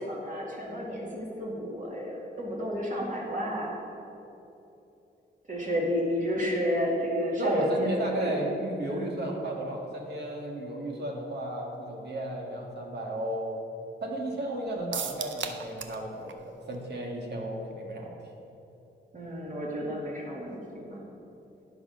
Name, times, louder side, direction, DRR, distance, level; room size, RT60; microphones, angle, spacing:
voice 1, 0.0-3.8 5.5-8.5 8.8-8.9 19.1-21.0, equal, 45° right, -4 dB, 2.0 m, -31 dB
voice 2, 7.4-13.6 14.0-18.2, right 1 dB, 60° right, 0 dB, 1.6 m, -33 dB
sound 1, 14.9-16.0 16.3-16.4 16.7-16.8, right 7 dB, 80° right, 0.6 m, -35 dB
9.5 x 5.9 x 5.2 m, 2.9 s
cardioid pair, 75°, 19 cm